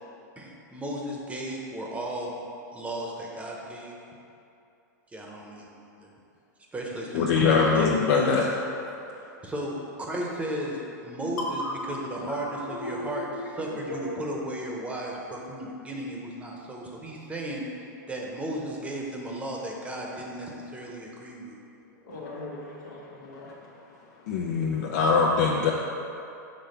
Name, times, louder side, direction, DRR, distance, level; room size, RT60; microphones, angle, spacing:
voice 1, 0.4-2.3 2.7-4.0 5.1-5.7 6.0-6.1 6.7-8.3 9.4-11.6 11.9-13.3 13.6-17.7 18.1-21.5, right 1 dB, 10° right, -2 dB, 0.8 m, -35 dB
voice 2, 7.1-8.4 24.3-25.7, left 5 dB, 65° left, -1 dB, 0.5 m, -22 dB
voice 3, 12.1-13.4 13.9-14.1 22.0-23.5, left 1 dB, 85° left, -4 dB, 1.3 m, -37 dB
5.2 x 3.4 x 5.6 m, 2.7 s
hypercardioid pair, 120°, 10 cm